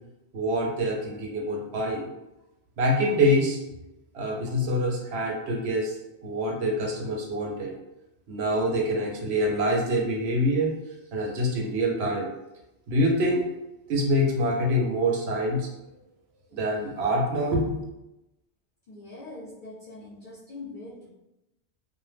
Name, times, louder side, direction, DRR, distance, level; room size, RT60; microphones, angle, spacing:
voice 1, 0.3-2.1 2.8-3.6 4.1-5.9 6.2-7.8 8.3-10.7 11.1-12.3 12.9-13.5 13.9-15.7 16.5-17.8, equal, 70° right, 0 dB, 0.8 m, -25 dB
voice 2, 18.9-21.1, left 2 dB, 60° left, -6 dB, 0.6 m, -42 dB
2.1 x 2.1 x 3.2 m, 0.92 s
omnidirectional pair, 1.2 m